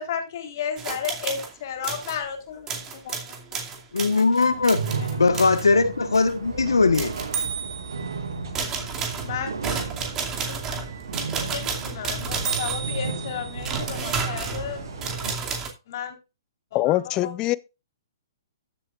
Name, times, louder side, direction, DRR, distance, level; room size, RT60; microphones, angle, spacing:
voice 1, 0.0-3.2 5.1-5.4 9.2-9.5 10.5-10.6 11.1-14.8 15.9-16.2 16.7-17.0 17.2-17.3, left 8 dB, 55° left, 3.8 m, -33 dB
sound 1, 0.8-1.5 1.8-2.2 2.7-5.7 6.1-6.3 6.9-8.1 8.6-15.7, right 5 dB, 20° right, 2.4 m, -31 dB
voice 2, 3.9-4.8 5.2-7.2, left 3 dB, 90° left, 1.3 m, -20 dB
sound 2, 4.5-15.3, right 4 dB, 80° right, 1.8 m, -35 dB
sound 3, 6.4-15.2, right 5 dB, 55° right, 6.4 m, -40 dB
voice 3, 16.7-17.6, left 16 dB, 30° left, 0.6 m, -23 dB
14.5 x 7.8 x 2.5 m
hypercardioid pair, 130°, 2 cm